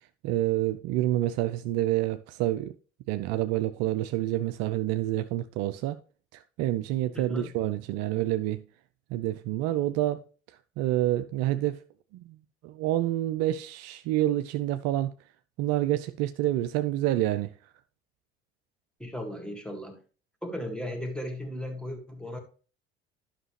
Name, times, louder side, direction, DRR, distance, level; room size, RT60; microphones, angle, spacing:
voice 1, 0.2-2.7 3.1-6.0 6.3-8.6 9.1-10.2 10.8-11.8 12.1-12.4 12.6-15.1 15.6-17.5, right 14 dB, 55° right, 0.5 m, -28 dB
voice 2, 7.1-7.5 19.0-20.0 20.4-22.4, left 1 dB, 5° left, 1.9 m, -36 dB
11.0 x 5.8 x 3.2 m
figure-of-eight pair, 60°, 31 cm